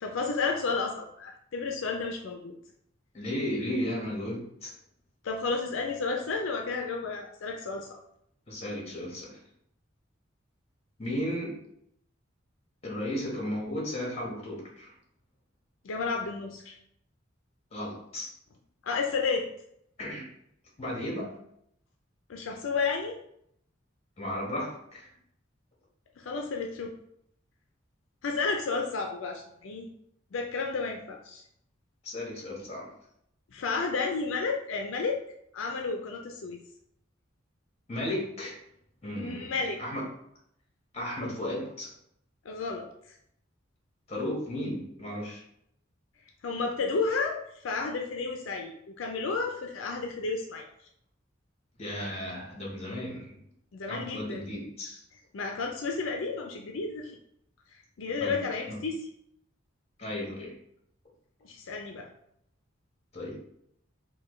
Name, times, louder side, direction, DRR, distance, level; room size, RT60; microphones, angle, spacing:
voice 1, 0.0-2.5 5.2-7.9 15.8-16.7 18.8-19.5 22.3-23.2 26.2-27.0 28.2-29.9 30.3-31.4 33.5-35.2 35.5-36.6 39.1-39.8 42.5-42.9 46.4-50.6 53.7-54.4 55.3-57.1 58.0-59.0 61.4-62.1, left 4 dB, 80° left, 2 dB, 0.4 m, -32 dB
voice 2, 3.1-4.7 8.5-9.4 11.0-11.6 12.8-14.9 17.7-18.3 20.0-20.3 20.8-21.3 24.2-25.1 32.0-32.9 37.9-38.6 39.0-39.5 39.8-40.1 40.9-41.9 44.1-45.4 51.8-53.4 53.9-55.0 58.2-58.4 58.7-58.8 60.0-60.6 63.1-63.4, left 1 dB, 35° left, -3 dB, 1.3 m, -34 dB
4.3 x 2.2 x 3.1 m, 0.72 s
head